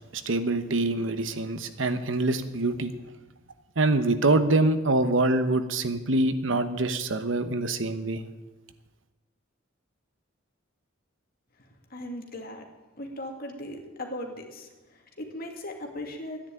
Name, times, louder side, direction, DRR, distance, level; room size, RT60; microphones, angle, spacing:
voice 1, 0.1-2.9 3.8-8.2, right 2 dB, 75° right, 10 dB, 1.1 m, -25 dB
voice 2, 11.9-12.7 13.0-16.4, left 1 dB, 50° left, 2 dB, 2.5 m, -38 dB
12.5 x 10.5 x 9.0 m, 1.1 s
head